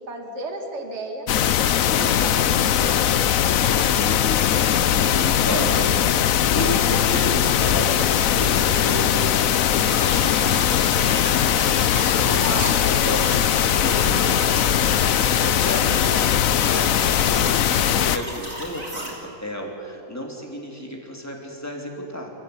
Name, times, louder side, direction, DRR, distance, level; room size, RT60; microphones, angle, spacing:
voice 1, 0.1-1.3 1.9-4.0 15.7-16.0 18.8-18.9, right 1 dB, 35° right, 2 dB, 2.7 m, -35 dB
sound 1, 1.3-18.2, left 10 dB, 60° left, 0.9 m, -20 dB
voice 2, 4.0-10.7 12.1-13.3 13.8-19.1 19.4-22.3, equal, 10° left, 1 dB, 3.3 m, -32 dB
sound 2, 9.7-19.1, equal, 20° right, 4.6 m, -34 dB
29.0 x 15.0 x 9.6 m, 3.0 s
omnidirectional pair, 2.0 m